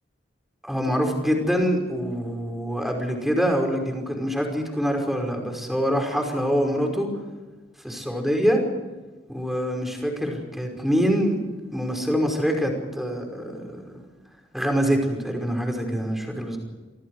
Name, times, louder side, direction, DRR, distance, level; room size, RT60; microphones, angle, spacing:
voice 1, 0.6-7.1 7.8-8.6 9.3-11.4 11.7-13.6 14.5-16.6, equal, ahead, 2 dB, 5.3 m, -25 dB
27.5 x 24.5 x 4.9 m, 1.3 s
head